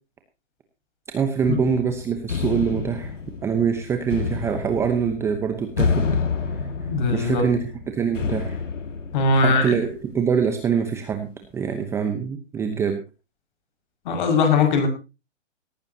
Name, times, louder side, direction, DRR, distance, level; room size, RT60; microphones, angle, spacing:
voice 1, 1.1-3.1 3.4-6.1 7.1-7.6 7.9-8.6 9.3-11.3 11.5-13.0, right 6 dB, 5° right, 6 dB, 0.8 m, -24 dB
sound 1, 1.4-10.1, left 5 dB, 85° left, 2.1 m, -29 dB
voice 2, 6.8-7.5 9.1-9.7 14.0-14.9, left 4 dB, 40° left, 6 dB, 5.7 m, -20 dB
18.5 x 15.0 x 2.8 m, 0.30 s
hypercardioid pair, 150°, 36 cm